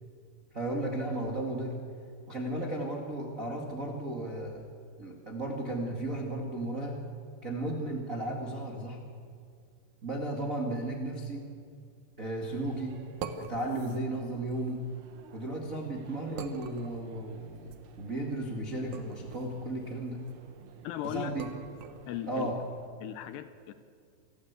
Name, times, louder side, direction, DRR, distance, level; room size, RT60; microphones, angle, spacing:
voice 1, 0.5-1.8 2.3-4.6 5.0-7.0 7.4-9.0 10.0-11.4 12.2-13.0 13.3-14.8 15.3-20.2 21.0-21.5 22.3-22.6, right 1 dB, 60° right, -1 dB, 0.8 m, -34 dB
sound 1, 12.4-22.9, right 6 dB, 80° right, 1.8 m, -47 dB
voice 2, 20.8-21.3 22.1-22.5 23.0-23.7, left 12 dB, 75° left, 11 dB, 2.7 m, -37 dB
27.5 x 13.0 x 8.2 m, 2.2 s
omnidirectional pair, 5.3 m